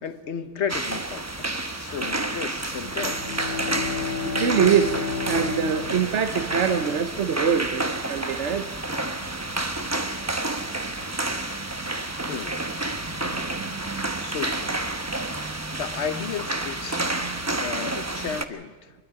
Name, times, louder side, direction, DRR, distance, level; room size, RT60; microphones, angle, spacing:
voice 1, 0.0-3.5 12.3-12.7 14.2-15.0 15.4-17.1 17.6-18.9, left 7 dB, 75° left, 11 dB, 1.3 m, -34 dB
sound 1, 0.7-18.4, right 2 dB, 15° right, 0.8 m, -30 dB
Bowed string instrument, 2.7-7.3, left 5 dB, 45° right, 3.2 m, -32 dB
voice 2, 4.2-8.7 17.2-17.3, right 7 dB, 85° right, 8 dB, 1.2 m, -24 dB
25.0 x 21.5 x 4.8 m, 1.4 s
omnidirectional pair, 1.2 m